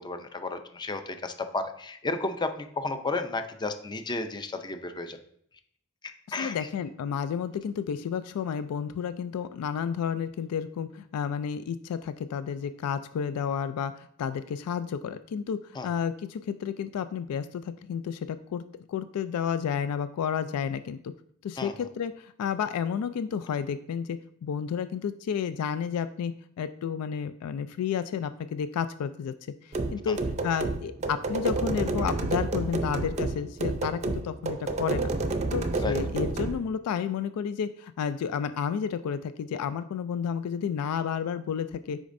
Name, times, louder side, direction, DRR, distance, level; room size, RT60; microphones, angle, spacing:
voice 1, 0.0-5.2 6.3-6.6 15.8-15.9 21.6-21.7 30.1-30.2 35.8-36.0, left 3 dB, 20° left, 8 dB, 0.5 m, -32 dB
voice 2, 6.3-15.6 15.8-18.6 18.9-21.1 21.4-29.3 29.6-30.2 30.4-35.1 35.5-42.0, left 7 dB, 85° left, 12 dB, 0.3 m, -31 dB
sound 1, 29.7-36.6, right 3 dB, 30° right, 0.5 m, -29 dB
8.3 x 5.0 x 2.6 m, 0.67 s
head